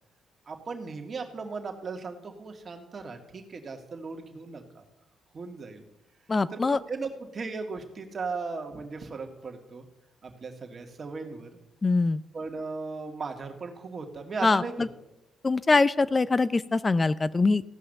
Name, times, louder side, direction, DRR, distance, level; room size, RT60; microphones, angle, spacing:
voice 1, 0.5-4.9 5.3-5.8 6.5-9.9 10.2-11.5 12.3-14.9, right 4 dB, 40° right, 4 dB, 2.0 m, -37 dB
voice 2, 6.3-6.8 11.8-12.2 14.4-14.9 15.4-17.6, left 3 dB, 25° left, 17 dB, 0.5 m, -23 dB
15.5 x 5.6 x 6.6 m, 0.89 s
cardioid pair, 85°, 0 cm